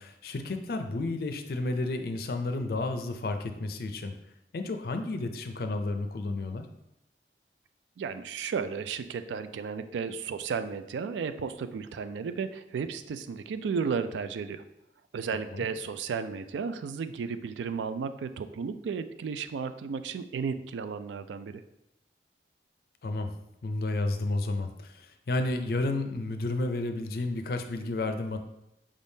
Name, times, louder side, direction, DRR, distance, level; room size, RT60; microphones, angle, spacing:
voice 1, 0.0-4.1 4.5-6.7 15.5-15.7 23.0-23.3 23.6-28.4, left 2 dB, 55° left, 7 dB, 0.4 m, -31 dB
voice 2, 8.0-14.6 15.1-21.6, right 5 dB, 90° right, 11 dB, 0.3 m, -34 dB
5.0 x 3.5 x 2.7 m, 0.85 s
head